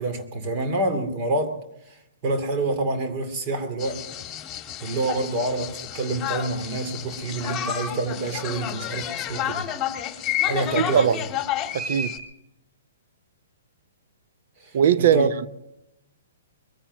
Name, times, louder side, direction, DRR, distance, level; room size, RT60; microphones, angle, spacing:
voice 1, 0.0-1.6 1.9-4.0 4.8-9.7 10.4-11.2 14.6-15.3, right 2 dB, 35° right, 2.4 m, -27 dB
sound 1, 3.8-12.2, left 10 dB, 20° left, 2.0 m, -30 dB
voice 2, 10.8-11.2 11.7-12.1 14.7-15.5, right 9 dB, 60° right, 0.7 m, -20 dB
22.0 x 10.0 x 6.0 m
hypercardioid pair, 130°, 0 cm